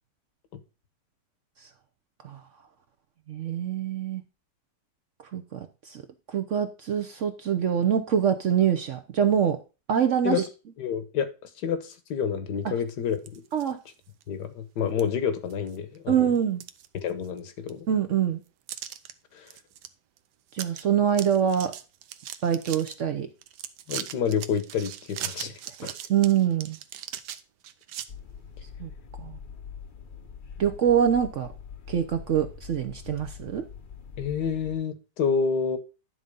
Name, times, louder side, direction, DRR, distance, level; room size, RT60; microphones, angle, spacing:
voice 1, 3.3-4.2 5.3-6.0 6.3-9.6 9.9-10.4 12.6-12.7 13.5-13.8 16.1-16.6 17.9-18.4 20.5-21.7 22.4-23.3 25.8-26.8 28.8-28.9 29.2-29.4 30.6-31.5 31.9-33.6, right 8 dB, 60° right, 8 dB, 0.8 m, -25 dB
voice 2, 10.8-11.3 11.6-13.4 14.3-16.3 16.9-17.9 19.3-19.5 23.9-25.5 25.8-25.9 34.2-35.8, left 7 dB, 75° left, 11 dB, 1.6 m, -28 dB
sound 1, 13.1-13.7 14.2-14.3 15.0-15.1 15.5-16.0 16.4-17.4 17.7-17.8 18.7-19.1 19.5-19.9 20.2-20.3 20.5-20.8 21.1-23.0 23.4-28.1, right 11 dB, 80° right, 1.3 m, -39 dB
sound 2, 28.1-34.8, left 6 dB, 45° left, 0.7 m, -43 dB
11.0 x 3.9 x 5.3 m, 0.31 s
omnidirectional pair, 1.9 m